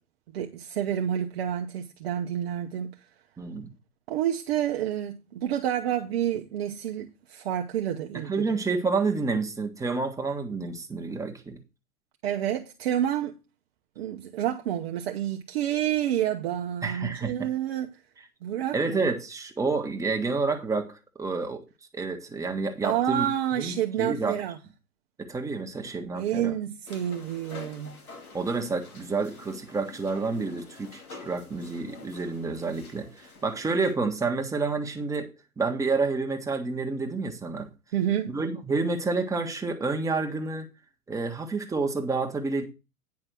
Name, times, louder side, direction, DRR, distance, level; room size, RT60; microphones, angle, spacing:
voice 1, 0.3-3.0 4.1-8.4 12.2-13.3 14.0-18.0 18.4-19.0 22.8-24.6 26.1-28.0 37.9-38.3, right 10 dB, 45° right, 0.9 m, -29 dB
voice 2, 3.4-3.7 8.2-11.6 16.8-17.5 18.7-21.6 21.9-23.3 23.5-24.4 25.2-26.5 28.3-37.7 38.3-40.7 41.1-42.6, right 4 dB, 5° right, 1.2 m, -29 dB
sound 1, 22.9-23.8 26.9-33.9, left 4 dB, 75° left, 3.1 m, -48 dB
9.6 x 5.4 x 6.0 m
figure-of-eight pair, 105°, 44 cm